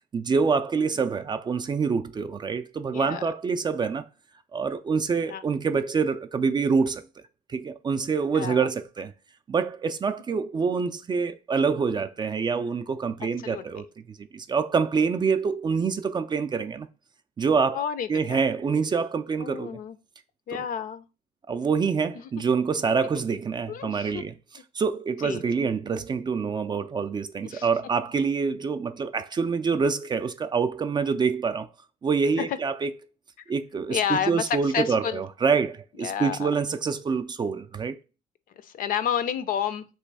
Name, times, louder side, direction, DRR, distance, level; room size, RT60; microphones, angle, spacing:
voice 1, 0.1-4.0 4.5-7.0 7.5-9.1 9.5-16.9 17.4-17.8 18.1-19.8 20.5-20.6 21.5-24.3 24.7-31.7 32.0-32.9 33.5-38.0, right 5 dB, 25° right, 0.3 m, -26 dB
voice 2, 2.9-3.2 5.3-5.4 8.3-8.7 13.4-13.6 17.7-18.4 19.4-20.0 20.5-21.0 23.7-24.2 25.2-25.4 27.4-27.7 32.4-32.6 33.9-35.2 36.0-36.5 38.6-39.9, left 8 dB, 55° left, 0.5 m, -30 dB
3.2 x 3.1 x 4.6 m
cardioid pair, 110°, 17 cm